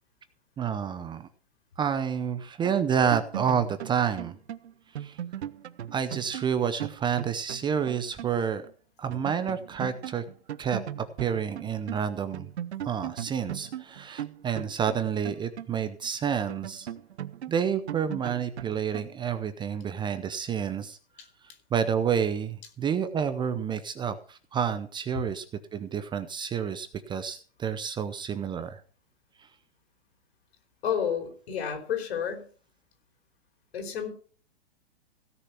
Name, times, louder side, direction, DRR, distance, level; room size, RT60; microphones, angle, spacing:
voice 1, 0.6-1.3 1.8-4.4 4.9-5.2 5.9-8.7 9.0-10.2 10.6-10.8 11.2-12.5 12.8-16.9 17.5-21.0 21.7-25.4 25.7-28.8 29.4-29.5, right 7 dB, 15° right, 11 dB, 0.6 m, -29 dB
sound 1, 2.6-8.4 8.7-8.8 9.1-12.0 12.3-16.1 16.5-19.3, right 11 dB, 80° right, 0.9 m, -38 dB
voice 2, 30.8-32.4 33.7-34.1, left 8 dB, 70° left, 5 dB, 4.7 m, -30 dB
16.5 x 6.7 x 5.8 m, 0.43 s
hypercardioid pair, 130°, 33 cm